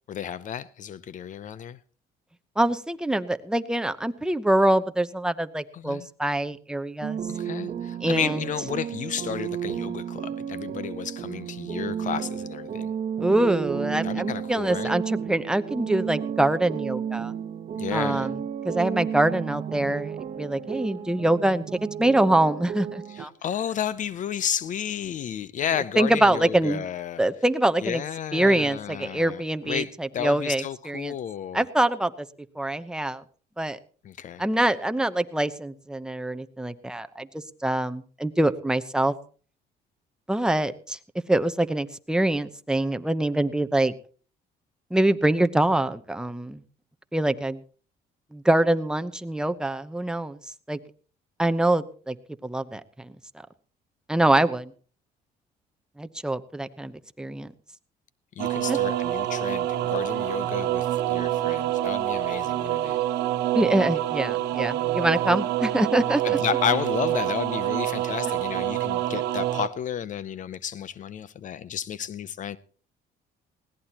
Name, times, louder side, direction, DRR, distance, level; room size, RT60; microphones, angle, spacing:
voice 1, 0.1-1.8 5.7-6.1 7.3-12.9 14.0-14.9 17.8-18.3 23.1-27.2 27.8-31.7 34.0-34.4 58.4-63.0 66.2-72.6, left 9 dB, 50° left, 0.6 m, -32 dB
voice 2, 2.6-7.2 8.0-8.5 13.2-17.3 17.9-18.4 18.6-21.6 22.0-23.3 26.0-26.9 27.2-28.0 28.3-31.1 31.5-32.3 32.6-33.2 33.6-33.8 34.4-39.1 40.3-41.0 41.3-43.9 44.9-46.6 47.1-47.6 48.3-50.4 50.7-50.8 51.4-52.2 52.4-53.1 54.1-54.7 56.0-57.5 58.7-58.8 63.5-66.4, right 1 dB, 5° right, 0.8 m, -24 dB
sound 1, 7.0-23.3, right 8 dB, 45° right, 0.9 m, -32 dB
sound 2, 58.4-69.7, right 13 dB, 80° right, 0.9 m, -26 dB
20.0 x 17.0 x 2.9 m
cardioid pair, 110°, 17 cm